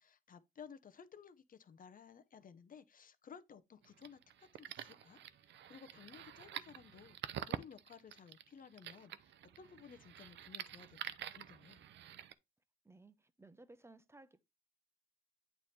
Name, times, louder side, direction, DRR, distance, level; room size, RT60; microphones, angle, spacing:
voice 1, 0.0-11.8, left 7 dB, 45° left, 0.9 m, -57 dB
sound 1, 3.8-12.3, right 10 dB, 65° right, 0.7 m, -48 dB
voice 2, 12.8-14.5, right 2 dB, 15° right, 0.8 m, -59 dB
8.8 x 3.3 x 4.3 m
cardioid pair, 90°, 20 cm